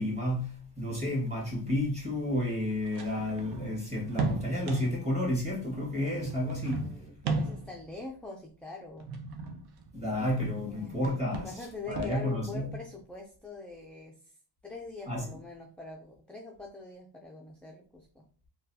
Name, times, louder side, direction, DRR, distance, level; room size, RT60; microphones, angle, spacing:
voice 1, 0.0-6.9 9.9-12.7 15.1-15.3, left 1 dB, 15° right, 1.6 m, -31 dB
sound 1, 0.9-1.0 1.5-1.6 2.6-5.1 6.1-7.9 9.0-10.7 10.9-12.4, right 3 dB, 65° right, 0.7 m, -36 dB
voice 2, 6.6-9.1 10.7-11.0 11.4-14.2 14.6-18.2, left 3 dB, 5° left, 0.4 m, -44 dB
3.9 x 2.3 x 2.7 m
cardioid pair, 100°, 43 cm